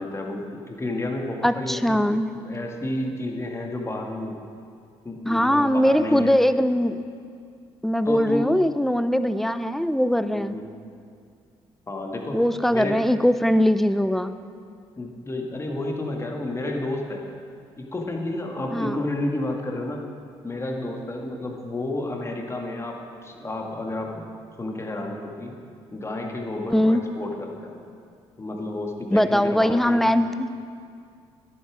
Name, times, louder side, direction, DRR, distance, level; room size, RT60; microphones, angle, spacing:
voice 1, 0.0-2.0 2.3-4.4 5.0-6.3 8.1-8.5 10.3-10.7 11.9-12.4 12.7-13.0 15.0-17.2 17.8-20.1 20.4-24.2 24.6-25.5 25.9-27.8 28.4-30.0, left 2 dB, 25° left, 1 dB, 1.8 m, -31 dB
voice 2, 1.4-2.3 5.3-7.0 7.8-10.6 12.3-14.3 18.7-19.0 26.7-27.0 29.1-30.5, equal, ahead, 12 dB, 0.5 m, -21 dB
11.0 x 8.5 x 6.2 m, 2.3 s
supercardioid pair, 70°, 11 cm